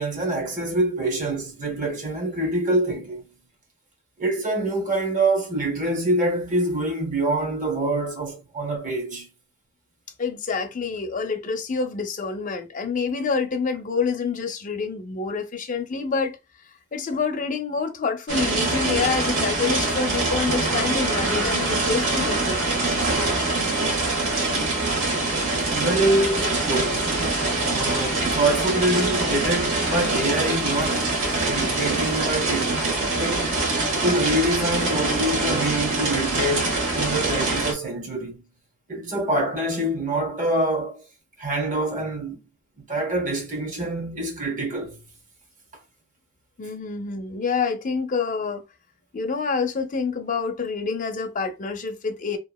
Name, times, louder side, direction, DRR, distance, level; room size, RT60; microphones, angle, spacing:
voice 1, 0.0-3.2 4.2-9.3 25.7-27.2 27.7-31.1 31.5-32.9 33.2-38.4 38.9-41.1 41.4-42.4 42.8-45.0, right 1 dB, 40° right, 0.9 m, -25 dB
voice 2, 10.2-16.4 16.9-22.6 46.6-48.6 49.1-52.4, left 5 dB, 40° left, 0.5 m, -27 dB
sound 1, 18.3-37.7, right 2 dB, 80° right, 1.1 m, -24 dB
3.0 x 2.3 x 2.2 m
head